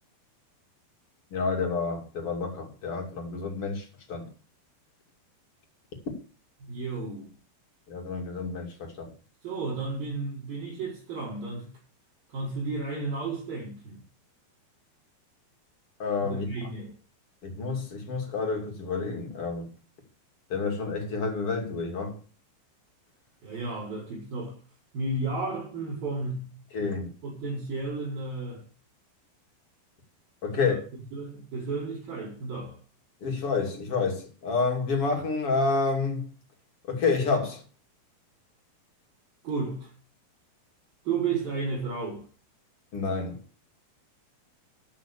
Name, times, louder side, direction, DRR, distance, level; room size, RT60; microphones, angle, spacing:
voice 1, 1.3-4.3 7.9-9.1 16.0-16.5 17.4-19.7 20.5-22.2 26.7-27.1 30.4-30.8 33.2-36.3 36.8-37.6 42.9-43.4, left 4 dB, 40° left, 3.2 m, -29 dB
voice 2, 6.6-7.3 9.4-11.7 12.3-14.0 16.2-16.9 23.4-24.6 24.9-26.5 27.2-28.6 30.5-30.8 31.1-32.8 39.4-39.9 41.1-42.2, right 3 dB, 65° right, 7.0 m, -33 dB
13.5 x 6.0 x 7.2 m
omnidirectional pair, 4.4 m